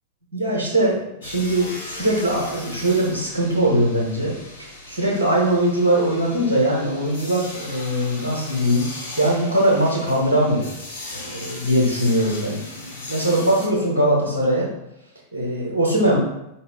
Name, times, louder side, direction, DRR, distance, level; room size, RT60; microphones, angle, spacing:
voice 1, 0.3-8.9 9.2-10.7 11.1-14.7 15.3-16.2, right 1 dB, 80° right, -4 dB, 1.1 m, -21 dB
sound 1, 1.2-13.7, left 2 dB, 60° left, 0.9 m, -38 dB
4.6 x 2.7 x 3.6 m, 0.86 s
figure-of-eight pair, 90°, 0 cm